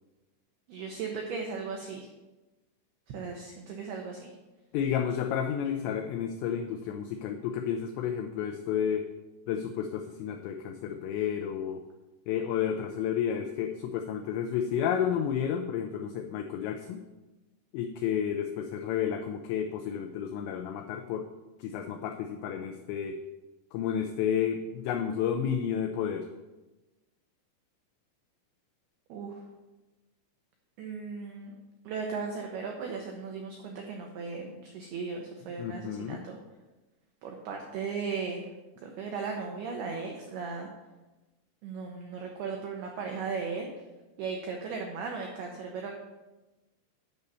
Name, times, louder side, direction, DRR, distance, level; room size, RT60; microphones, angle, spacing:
voice 1, 0.7-2.1 3.1-4.3 29.1-29.4 30.8-31.5 31.8-36.4 37.2-38.5 38.8-40.7 41.6-43.7 44.2-45.9, right 5 dB, 85° right, 1 dB, 2.2 m, -36 dB
voice 2, 4.7-9.1 9.5-11.8 12.3-17.0 17.7-21.2 21.6-23.2 23.7-26.3 35.6-36.2, left 8 dB, 90° left, 5 dB, 2.5 m, -31 dB
9.3 x 5.5 x 6.8 m, 1.1 s
omnidirectional pair, 5.8 m